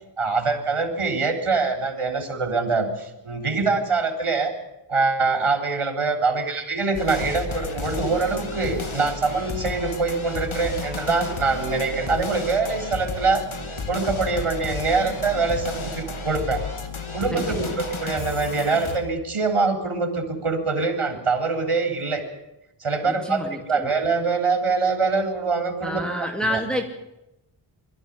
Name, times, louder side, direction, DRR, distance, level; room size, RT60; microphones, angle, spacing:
voice 1, 0.2-4.5 4.9-13.4 13.9-16.6 17.1-22.2 22.8-26.0 26.4-26.6, right 4 dB, 85° right, 5 dB, 3.8 m, -24 dB
sound 1, 6.9-19.0, left 3 dB, 70° left, 2.6 m, -32 dB
voice 2, 17.3-17.7 23.0-23.9 25.8-26.8, equal, ahead, 2 dB, 2.8 m, -29 dB
23.0 x 13.5 x 10.0 m, 0.91 s
wide cardioid pair, 55°, 50 cm